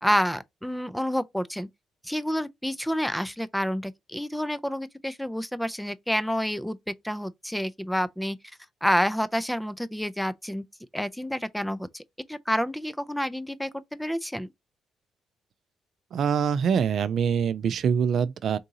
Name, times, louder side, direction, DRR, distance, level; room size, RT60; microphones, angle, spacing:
voice 1, 0.0-1.7 2.0-6.8 7.0-8.4 8.8-10.6 10.9-12.0 12.3-14.5, equal, 5° left, 0.4 m, -28 dB
voice 2, 16.1-18.6, right 7 dB, 65° right, 0.3 m, -24 dB
3.6 x 2.7 x 3.9 m
cardioid pair, 90°, 0 cm